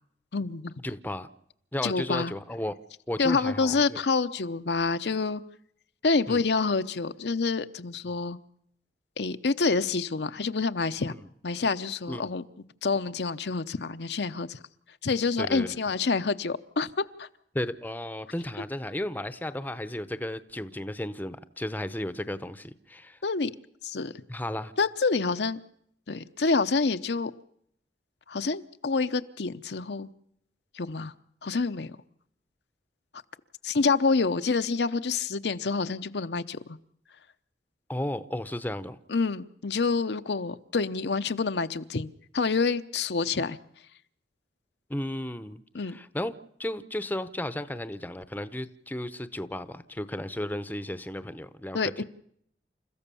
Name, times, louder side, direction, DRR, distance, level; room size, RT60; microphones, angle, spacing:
voice 1, 0.3-0.7 1.8-2.3 3.2-5.4 6.0-8.4 9.2-11.1 11.4-12.4 12.8-14.6 15.0-17.3 23.2-23.5 23.8-24.1 24.8-25.6 26.1-27.3 28.3-30.1 30.7-31.1 31.4-31.9 33.6-36.8 39.1-43.6 45.7-46.0 51.7-52.0, left 4 dB, 75° left, 0.8 m, -27 dB
voice 2, 0.8-1.3 1.7-2.7 3.1-4.0 6.3-6.4 12.1-12.2 15.4-15.8 17.5-23.2 24.3-24.7 37.9-39.0 44.9-45.6 45.9-46.3 46.6-52.0, left 1 dB, 10° left, 0.7 m, -34 dB
29.0 x 14.5 x 6.9 m
head